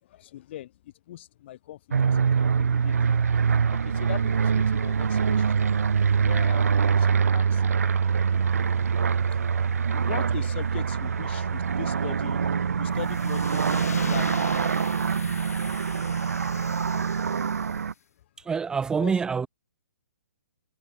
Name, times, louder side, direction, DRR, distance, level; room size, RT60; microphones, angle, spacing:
voice 1, 0.0-3.2 3.7-7.8 9.0-9.2 9.6-12.4 12.8-14.4 18.4-18.5 19.0-19.1, left 13 dB, 45° left, 4.3 m, -41 dB
sound 1, 1.9-17.9, right 6 dB, 75° right, 1.6 m, -24 dB
sound 2, 12.9-17.9, left 6 dB, 80° left, 2.2 m, -41 dB
voice 2, 18.4-19.5, right 6 dB, 10° right, 0.6 m, -26 dB
hypercardioid pair, 140°, 8 cm